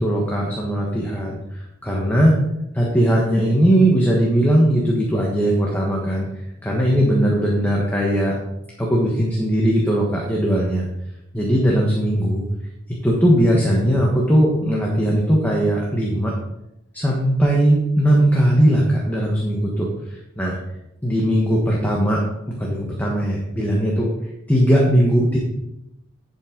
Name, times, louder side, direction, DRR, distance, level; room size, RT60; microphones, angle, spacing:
voice 1, 0.0-1.4 1.8-2.4 2.7-6.3 6.6-8.4 8.8-10.9 11.3-12.4 13.0-16.3 16.9-19.9 20.4-20.6 21.0-22.2 22.5-24.1 24.5-25.4, equal, 10° left, -3 dB, 1.2 m, -19 dB
10.5 x 5.6 x 3.8 m, 0.87 s
head